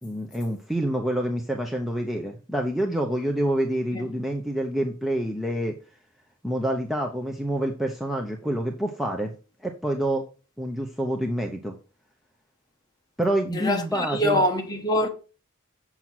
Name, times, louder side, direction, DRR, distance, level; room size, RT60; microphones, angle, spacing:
voice 1, 0.0-5.7 6.4-9.3 9.6-10.2 10.6-11.7 13.2-14.4, right 1 dB, ahead, 0.8 m, -27 dB
voice 2, 13.5-15.1, equal, 20° left, 1.4 m, -24 dB
7.7 x 6.0 x 6.1 m
head